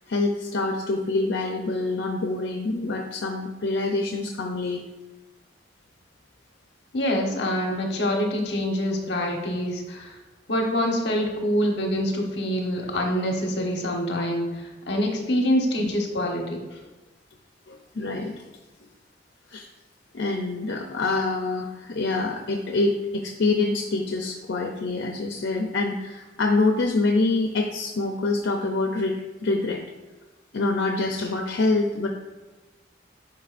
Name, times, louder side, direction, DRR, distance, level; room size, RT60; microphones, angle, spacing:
voice 1, 0.1-4.8 15.8-15.9 17.7-18.5 19.5-19.7 20.1-29.8 30.5-32.1, left 3 dB, 85° left, 2 dB, 0.6 m, -26 dB
voice 2, 6.9-10.2 10.5-16.6, equal, 70° left, 1 dB, 1.1 m, -25 dB
10.5 x 5.4 x 2.6 m, 1.2 s
head